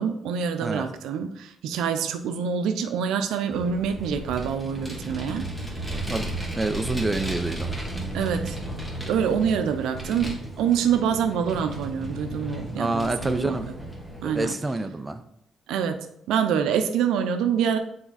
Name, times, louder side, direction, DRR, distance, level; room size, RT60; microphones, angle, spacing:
voice 1, 0.0-5.8 8.1-8.6 9.1-13.6 14.2-14.5 15.7-17.8, right 7 dB, 90° right, 7 dB, 0.6 m, -26 dB
Vehicle, 3.5-14.4, right 1 dB, 5° left, 1.5 m, -34 dB
voice 2, 6.1-7.7 12.7-13.7 14.2-15.2, right 2 dB, 15° right, 8 dB, 0.5 m, -27 dB
6.0 x 4.4 x 4.0 m, 0.75 s
cardioid pair, 90°, 0 cm